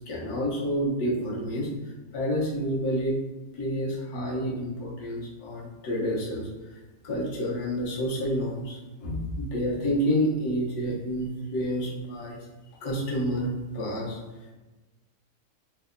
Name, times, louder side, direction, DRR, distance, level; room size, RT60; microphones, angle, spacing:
voice 1, 0.1-1.7 2.1-3.1 3.6-6.5 7.0-12.4 12.8-14.2, equal, 80° left, -4 dB, 1.4 m, -29 dB
3.3 x 2.1 x 3.6 m, 1.2 s
omnidirectional pair, 1.6 m